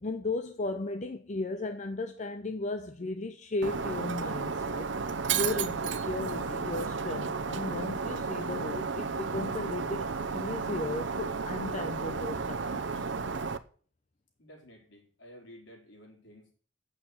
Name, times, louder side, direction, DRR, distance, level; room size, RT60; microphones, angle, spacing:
voice 1, 0.0-4.9 5.3-13.1, left 2 dB, 40° left, 0.7 m, -35 dB
Shatter, 3.6-13.6, right 5 dB, 70° right, 0.8 m, -33 dB
voice 2, 14.4-16.5, equal, 70° left, 4.0 m, -53 dB
8.6 x 6.6 x 7.8 m
head